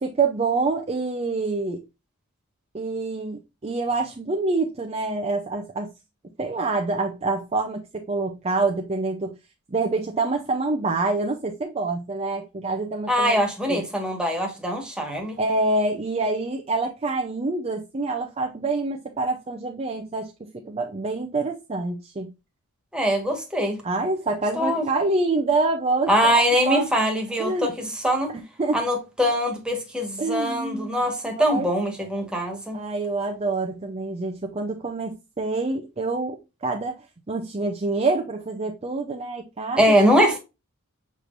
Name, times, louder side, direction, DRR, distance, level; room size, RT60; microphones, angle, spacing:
voice 1, 0.0-1.8 2.7-5.9 6.4-7.8 8.1-9.3 9.7-13.4 13.7-13.8 15.4-22.3 23.8-26.3 26.7-27.1 27.4-27.9 28.6-28.8 30.2-31.0 31.3-31.7 32.7-36.9 37.3-39.9, right 3 dB, 30° right, 0.6 m, -26 dB
voice 2, 13.1-15.4 22.9-23.8 24.5-24.9 26.1-28.3 28.7-32.8 39.8-40.4, equal, 5° right, 1.5 m, -22 dB
6.7 x 3.1 x 2.5 m
head